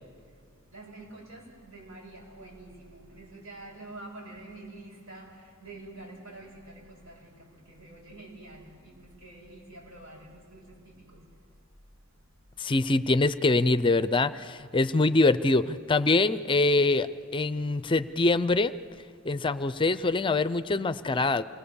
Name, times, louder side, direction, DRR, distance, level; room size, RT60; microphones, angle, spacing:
voice 1, 0.7-5.3 5.6-7.3 7.7-8.9 9.2-10.7, right 2 dB, 85° right, -3 dB, 8.0 m, -46 dB
voice 2, 12.6-18.7 19.3-21.4, left 2 dB, 25° left, 13 dB, 0.5 m, -24 dB
27.5 x 20.5 x 7.0 m, 2.1 s
head